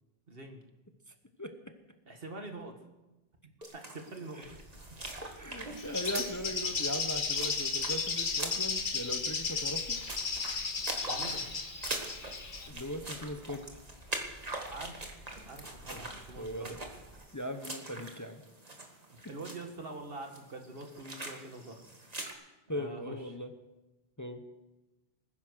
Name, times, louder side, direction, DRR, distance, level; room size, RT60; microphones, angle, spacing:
voice 1, 0.3-0.6 2.1-2.8 3.4-4.5 11.0-11.4 14.7-15.1 15.4-16.8 19.3-21.9 22.7-23.4, right 2 dB, 65° right, 4 dB, 2.0 m, -45 dB
sound 1, 3.6-22.3, right 2 dB, 40° right, 1.9 m, -43 dB
sound 2, 4.4-17.2, equal, 70° left, 4.4 m, -54 dB
voice 2, 5.3-10.0 12.7-13.6 15.9-16.0 16.4-16.8 17.3-18.4 22.7-23.5 24.2-24.4, left 1 dB, 20° left, 7 dB, 0.9 m, -39 dB
Bird, 5.8-12.7, left 4 dB, 55° left, 1.4 m, -34 dB
20.5 x 10.0 x 6.3 m, 1.0 s
omnidirectional pair, 1.0 m